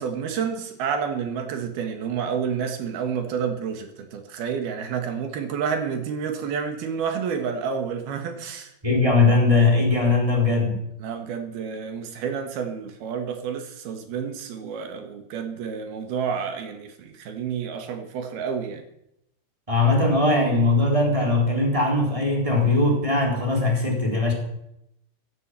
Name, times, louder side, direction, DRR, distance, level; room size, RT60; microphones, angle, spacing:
voice 1, 0.0-8.7 11.0-18.8, right 6 dB, 70° right, 6 dB, 3.5 m, -29 dB
voice 2, 8.8-10.8 19.7-24.3, left 3 dB, 10° right, -1 dB, 3.6 m, -20 dB
16.0 x 9.4 x 8.4 m, 0.81 s
omnidirectional pair, 4.8 m